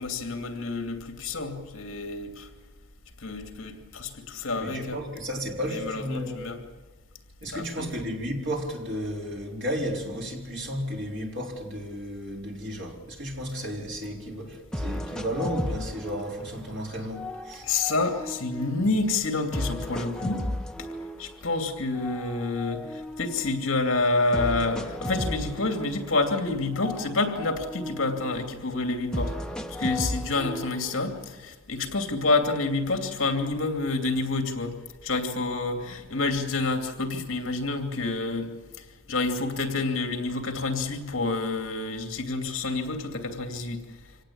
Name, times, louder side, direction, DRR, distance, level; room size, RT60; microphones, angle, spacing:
voice 1, 0.0-2.5 3.2-5.0 5.7-6.6 7.5-7.9 17.6-20.4 21.2-29.3 29.8-34.7 35.0-38.5 38.8-43.8, left 3 dB, 60° left, 2.7 m, -28 dB
voice 2, 4.6-6.6 7.4-17.7, equal, 55° right, 4.1 m, -33 dB
sound 1, 14.0-14.1 14.7-16.7 17.1-19.0 19.5-21.5 21.9-23.7 24.3-26.5 26.7-28.5 29.1-31.1, left 1 dB, 5° left, 0.8 m, -35 dB
25.5 x 18.0 x 8.7 m
head